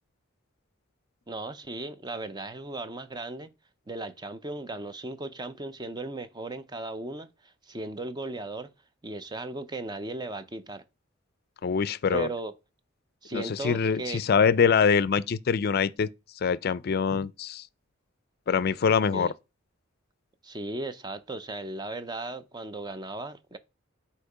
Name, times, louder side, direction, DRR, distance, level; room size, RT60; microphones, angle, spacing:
voice 1, 1.3-3.5 3.9-8.7 9.0-10.8 12.1-12.5 13.2-14.2 19.1-19.3 20.4-23.6, right 2 dB, 20° right, 0.5 m, -36 dB
voice 2, 11.6-12.3 13.3-16.1 16.4-17.6 18.5-19.3, left 6 dB, 50° left, 0.4 m, -24 dB
8.2 x 2.9 x 4.9 m
head